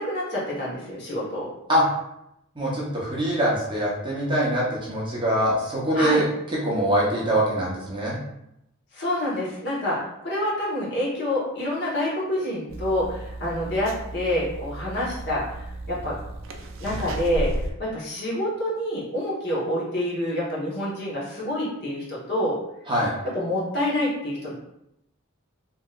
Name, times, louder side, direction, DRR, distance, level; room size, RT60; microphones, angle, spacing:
voice 1, 0.0-1.5 5.9-6.2 8.9-16.2 16.8-17.5 17.8-22.6 23.2-24.5, left 1 dB, 50° left, -6 dB, 1.0 m, -27 dB
voice 2, 2.6-6.2 6.6-8.2 22.9-23.1, right 1 dB, 20° right, -5 dB, 0.7 m, -23 dB
sound 1, 12.7-17.7, right 1 dB, 65° right, 0.4 m, -34 dB
3.1 x 2.8 x 2.3 m, 0.82 s
head